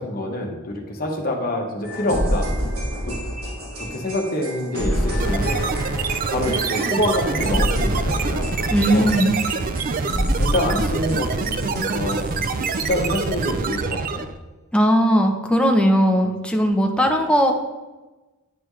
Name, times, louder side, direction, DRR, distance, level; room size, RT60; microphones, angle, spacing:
voice 1, 0.0-2.5 3.0-3.2 3.8-5.7 6.3-9.2 10.3-14.3, left 1 dB, 45° left, 1 dB, 1.3 m, -26 dB
sound 1, 1.8-13.2, equal, 75° right, 2.4 m, -28 dB
sound 2, 5.2-14.4, right 5 dB, 40° right, 0.4 m, -26 dB
voice 2, 8.7-9.3 14.7-17.5, equal, 5° left, 3 dB, 0.7 m, -18 dB
9.3 x 6.0 x 3.2 m, 1.2 s
head